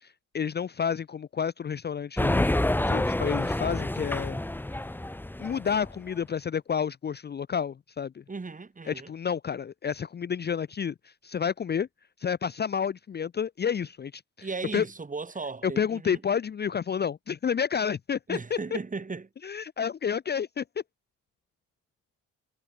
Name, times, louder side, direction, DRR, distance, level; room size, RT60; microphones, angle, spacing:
voice 1, 0.0-2.5 2.9-4.4 5.4-8.2 8.9-11.9 12.2-14.5 14.7-14.8 15.6-18.6 19.4-20.6, left 7 dB, 35° left, 0.7 m, -30 dB
sound 1, 2.2-6.0, left 1 dB, 5° left, 1.0 m, -28 dB
voice 2, 8.3-9.1 14.4-16.2 18.3-19.3, right 4 dB, 25° right, 5.1 m, -36 dB
cardioid pair, 90°, 30 cm